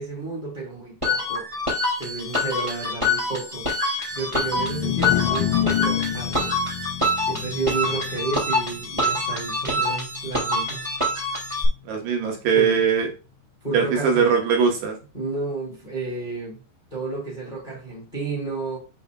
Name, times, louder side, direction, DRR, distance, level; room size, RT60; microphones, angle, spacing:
voice 1, 0.0-1.5 2.0-3.7 4.1-6.5 7.3-10.8 12.5-12.8 13.6-14.3 15.1-16.6 16.9-18.8, right 3 dB, 15° left, 1.5 m, -31 dB
sound 1, 1.0-11.6, left 2 dB, 45° right, 0.4 m, -26 dB
sound 2, 4.5-10.8, left 11 dB, 85° left, 3.2 m, -29 dB
voice 2, 11.9-13.1 13.7-15.0, right 6 dB, 70° right, 3.4 m, -21 dB
8.1 x 5.3 x 2.4 m
omnidirectional pair, 5.9 m